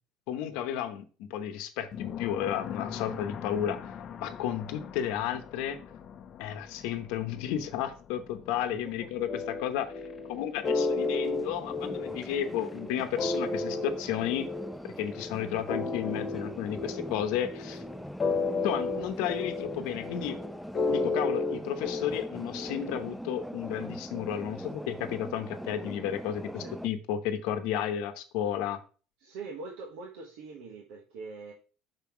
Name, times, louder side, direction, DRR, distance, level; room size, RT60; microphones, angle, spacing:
voice 1, 0.3-3.9 4.2-5.8 6.4-9.9 10.3-14.5 15.0-17.8 18.6-20.4 20.9-28.8, left 10 dB, 75° left, 8 dB, 0.9 m, -33 dB
sound 1, 1.9-12.5, left 8 dB, 50° left, 0.6 m, -44 dB
voice 2, 8.7-9.2 26.5-26.8 29.2-31.5, right 4 dB, 75° right, -1 dB, 1.3 m, -43 dB
sound 2, 9.3-23.1, left 3 dB, 30° left, 1.5 m, -33 dB
sound 3, 10.6-26.9, equal, ahead, 0.4 m, -42 dB
5.7 x 3.6 x 5.8 m, 0.37 s
supercardioid pair, 90°, 0 cm